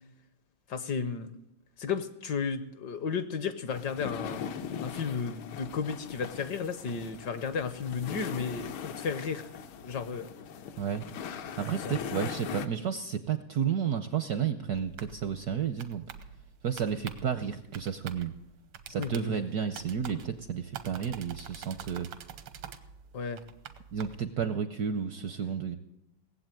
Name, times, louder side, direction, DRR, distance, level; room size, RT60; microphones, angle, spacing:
voice 1, 0.7-1.3 1.8-4.4 4.8-9.5 9.8-10.3 11.8-12.0 19.0-19.4 23.1-23.4, left 5 dB, 65° left, 11 dB, 1.2 m, -33 dB
sound 1, 3.7-12.7, left 7 dB, 80° left, 1.7 m, -40 dB
voice 2, 11.6-16.0 16.6-18.3 18.9-22.1 23.9-25.8, right 7 dB, 70° right, 10 dB, 0.9 m, -32 dB
sound 2, 14.7-24.2, right 8 dB, 85° right, 1.8 m, -47 dB
18.0 x 7.9 x 9.0 m, 0.86 s
omnidirectional pair, 2.3 m